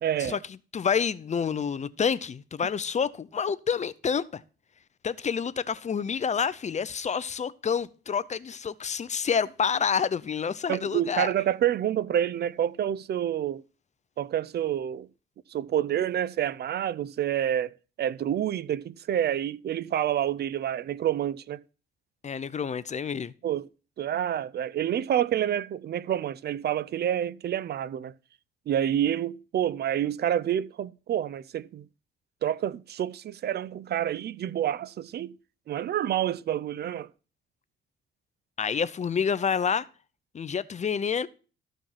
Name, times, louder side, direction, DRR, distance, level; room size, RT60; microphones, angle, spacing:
voice 1, 0.0-0.4 10.7-13.6 14.2-15.1 15.5-21.6 23.4-23.7 24.0-28.1 28.7-31.9 32.4-35.3 35.7-37.1, right 10 dB, 55° right, 0.5 m, -28 dB
voice 2, 0.7-4.4 5.0-11.3 22.2-23.3 38.6-39.9 40.3-41.3, left 6 dB, 35° left, 0.6 m, -28 dB
13.5 x 5.1 x 5.7 m
cardioid pair, 90°, 20 cm